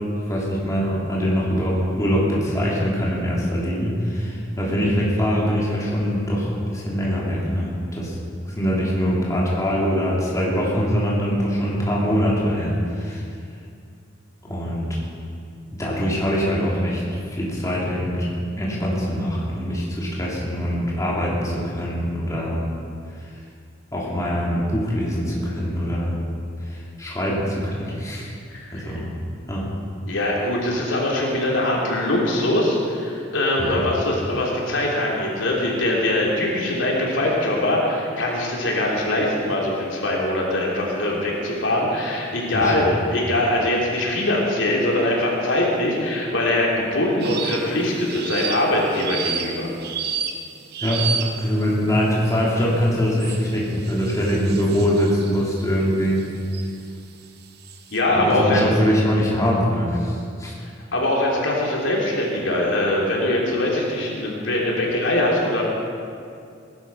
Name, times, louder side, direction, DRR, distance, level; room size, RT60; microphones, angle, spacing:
voice 1, 0.2-8.2 8.4-13.3 14.4-14.9 15.8-18.3 18.6-22.7 23.2-23.3 23.9-26.2 26.6-28.4 28.7-29.1 29.5-29.6 33.6-33.8 42.5-42.9 50.8-51.1 51.4-56.2 58.1-60.5, equal, 15° left, -5 dB, 3.1 m, -23 dB
voice 2, 28.5-28.9 30.1-49.7 57.9-58.6 60.9-65.6, left 1 dB, 85° left, -3 dB, 3.4 m, -22 dB
sound 1, 47.2-47.7 48.1-51.6 52.2-52.6 53.2-56.7 57.2-58.0, right 6 dB, 55° right, 1.0 m, -31 dB
19.5 x 11.5 x 5.6 m, 2.3 s
head